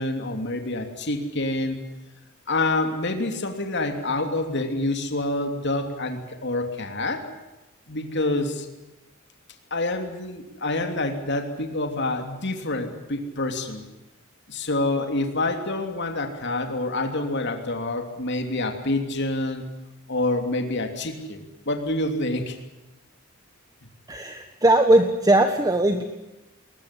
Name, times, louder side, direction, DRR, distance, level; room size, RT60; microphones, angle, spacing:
voice 1, 0.0-1.8 2.5-7.3 7.9-8.7 9.7-13.8 14.5-19.6 20.1-22.6, left 2 dB, 55° left, 5 dB, 3.0 m, -27 dB
voice 2, 24.1-26.0, right 1 dB, 20° right, 6 dB, 1.4 m, -19 dB
21.5 x 20.5 x 10.0 m, 1.0 s
head